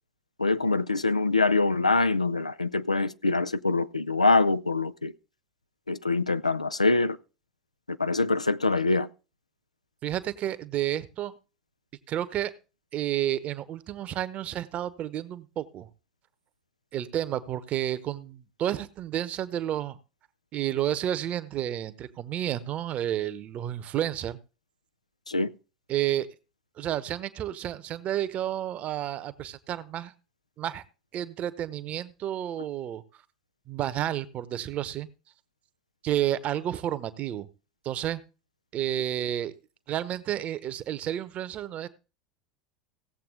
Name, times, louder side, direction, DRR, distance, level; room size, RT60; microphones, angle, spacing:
voice 1, 0.4-5.1 5.9-7.2 7.9-9.1 25.3-25.5, left 3 dB, 85° left, 0.5 m, -24 dB
voice 2, 10.0-11.3 12.1-12.5 12.9-15.9 16.9-20.0 20.5-24.4 25.9-26.3 26.8-30.1 30.6-30.8 31.1-33.0 33.7-35.1 36.0-37.5 37.8-38.2 38.7-39.5 39.9-41.9, right 11 dB, 40° right, 1.0 m, -31 dB
17.0 x 7.6 x 3.8 m
figure-of-eight pair, 75°, 4 cm